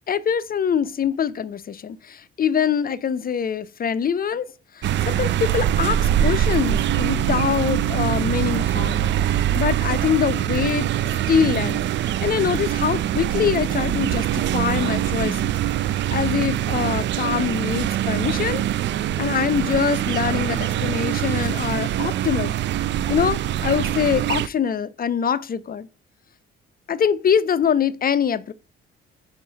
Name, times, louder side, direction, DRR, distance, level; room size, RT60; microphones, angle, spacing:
voice 1, 0.1-4.5 4.7-10.9 11.3-15.5 15.8-18.6 18.9-22.5 23.1-25.9 26.9-28.5, left 7 dB, 30° left, 0.6 m, -24 dB
sound 1, 4.8-24.5, right 11 dB, 35° right, 0.4 m, -23 dB
5.4 x 5.1 x 5.3 m
figure-of-eight pair, 45°, 31 cm